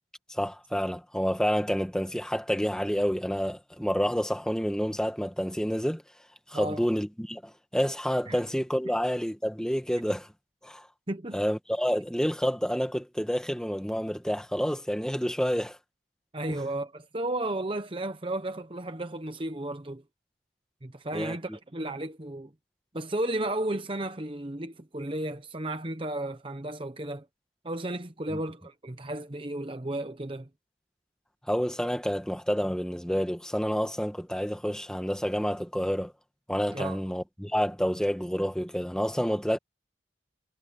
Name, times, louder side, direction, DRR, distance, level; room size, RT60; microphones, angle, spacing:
voice 1, 0.3-6.0 6.5-10.3 10.6-10.9 11.3-15.8 16.5-16.6 21.1-21.3 31.5-36.1 36.5-39.6, equal, 5° left, 1.7 m, -29 dB
voice 2, 6.5-6.8 8.3-8.4 8.8-8.9 11.1-11.4 16.3-20.0 20.8-22.5 22.9-27.3 27.6-30.5 36.7-37.0, right 1 dB, 30° right, 0.9 m, -33 dB
head